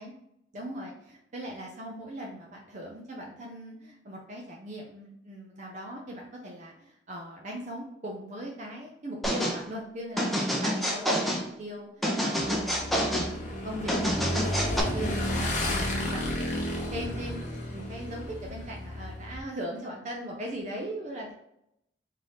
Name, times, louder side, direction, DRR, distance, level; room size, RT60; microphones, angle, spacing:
voice 1, 0.5-17.4 17.7-21.3, right 1 dB, 40° right, -1 dB, 0.6 m, -40 dB
sound 1, 9.2-9.6 10.2-11.4 12.0-13.3 13.9-14.8, equal, ahead, 0.6 m, -27 dB
Motorcycle / Engine, 12.4-19.4, left 1 dB, 45° left, 0.8 m, -32 dB
3.8 x 2.8 x 3.4 m, 0.80 s
head